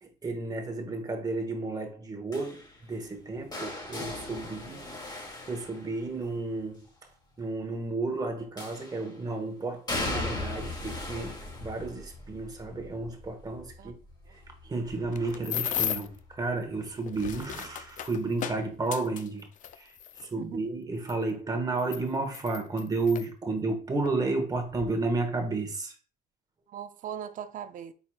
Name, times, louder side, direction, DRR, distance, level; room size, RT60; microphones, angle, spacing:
voice 1, 0.0-4.8 5.1-6.9 7.4-13.9 14.3-19.5 19.7-25.9, right 3 dB, 20° right, 1.0 m, -32 dB
sound 1, 2.3-6.4 8.6-9.2 9.9-15.7 16.0-16.4 17.7-17.8, left 2 dB, 25° left, 1.4 m, -38 dB
voice 2, 4.4-4.9 13.8-14.0 14.3-14.4 20.4-20.6 26.7-27.9, right 9 dB, 50° right, 0.5 m, -41 dB
sound 2, 14.8-16.2 16.9-20.3 21.1-21.2 21.8-23.3 24.1-24.2 24.5-24.9, left 10 dB, 50° left, 0.4 m, -35 dB
4.5 x 4.3 x 2.2 m
cardioid pair, 110°, 17 cm